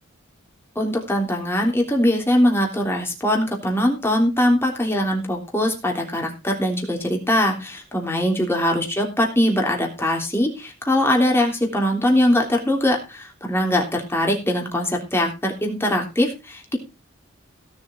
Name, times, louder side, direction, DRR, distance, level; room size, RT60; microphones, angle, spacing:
voice 1, 0.7-16.8, left 1 dB, 10° left, 0 dB, 3.3 m, -21 dB
17.0 x 7.1 x 4.4 m, 0.28 s
head